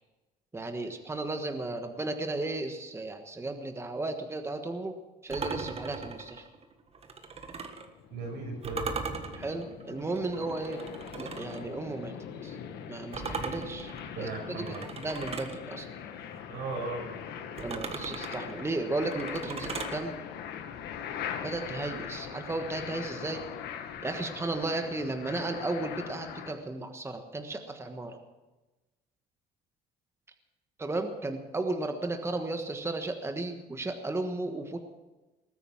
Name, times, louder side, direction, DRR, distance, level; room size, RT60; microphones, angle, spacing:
voice 1, 0.5-4.9 5.2-6.5 9.3-10.8 11.2-12.1 12.4-12.6 12.9-15.9 17.6-20.2 21.4-23.4 24.0-28.2 30.8-34.8, right 2 dB, 15° right, 6 dB, 1.4 m, -34 dB
sound 1, 5.3-7.9 8.6-11.6 13.1-15.6 17.6-20.0, right 5 dB, 35° right, 1.6 m, -39 dB
sound 2, 7.7-26.5, left 8 dB, 80° left, 1.7 m, -41 dB
voice 2, 8.1-8.9 14.1-14.8 16.5-17.0, right 3 dB, 85° right, 2 dB, 5.9 m, -36 dB
19.5 x 9.1 x 7.7 m, 1.1 s
cardioid pair, 110°, 17 cm